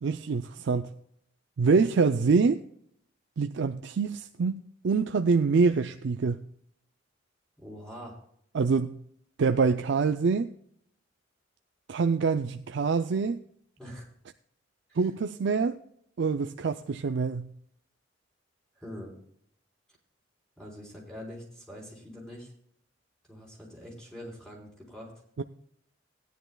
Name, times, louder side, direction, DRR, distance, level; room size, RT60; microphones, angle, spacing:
voice 1, 0.0-0.9 1.6-2.6 3.4-6.4 8.5-9.0 9.4-10.5 11.9-13.4 15.0-15.8 16.2-17.5 25.4-25.5, right 4 dB, 65° right, 0.4 m, -25 dB
voice 2, 7.6-8.2 13.8-14.1 14.9-15.1 18.8-19.1 20.6-22.5 23.3-25.1, equal, 5° left, 4.1 m, -44 dB
17.5 x 10.0 x 2.3 m
head